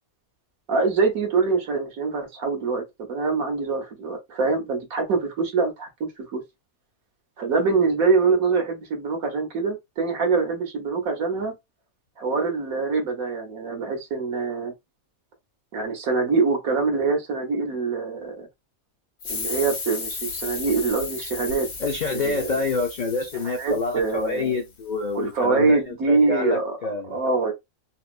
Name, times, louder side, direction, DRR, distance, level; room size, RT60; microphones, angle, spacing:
voice 1, 0.7-6.4 7.4-11.5 12.2-14.7 15.7-18.5 19.3-21.7 22.1-22.6 23.4-24.6 25.1-27.5, right 4 dB, 85° right, 1.5 m, -24 dB
sound 1, 19.2-24.5, left 4 dB, 80° left, 1.5 m, -34 dB
voice 2, 21.8-27.2, left 3 dB, 50° left, 0.5 m, -27 dB
4.1 x 2.0 x 2.5 m
omnidirectional pair, 1.4 m